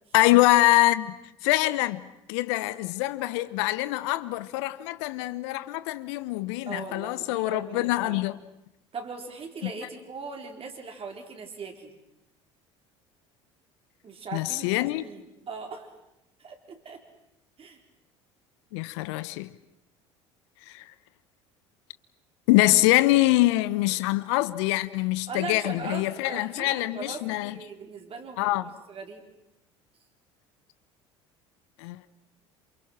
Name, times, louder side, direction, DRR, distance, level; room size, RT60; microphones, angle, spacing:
voice 1, 0.1-1.1 1.4-8.4 9.6-9.7 14.3-15.0 18.7-19.5 20.7-20.8 22.5-27.6 28.4-28.7 31.8-32.1, left 18 dB, 65° left, 0.9 m, -24 dB
voice 2, 6.7-8.2 8.9-12.0 14.0-15.9 16.4-17.0 17.6-17.8 25.3-29.2, right 5 dB, 35° right, 4.8 m, -40 dB
28.0 x 28.0 x 5.9 m
figure-of-eight pair, 65°, 16 cm